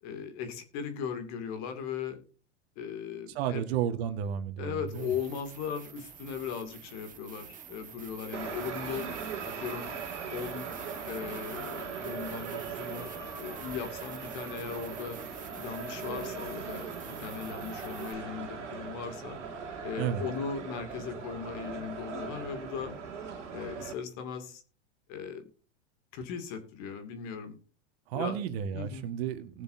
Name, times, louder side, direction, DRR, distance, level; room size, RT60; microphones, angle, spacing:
voice 1, 0.0-2.2 2.8-3.6 4.6-9.1 9.4-9.9 10.3-10.7 11.0-15.2 15.6-19.4 19.8-23.0 23.5-24.6 25.1-25.5 26.1-27.6 28.1-28.4 28.7-29.1, left 7 dB, 50° left, 7 dB, 2.5 m, -38 dB
voice 2, 3.4-5.1 20.0-20.2 28.1-29.6, right 9 dB, 60° right, 9 dB, 1.7 m, -32 dB
sound 1, 4.9-18.1, right 7 dB, 20° right, 1.6 m, -48 dB
sound 2, 8.3-23.9, right 5 dB, 85° right, 2.6 m, -40 dB
19.5 x 7.0 x 2.7 m, 0.37 s
hypercardioid pair, 105°, 35 cm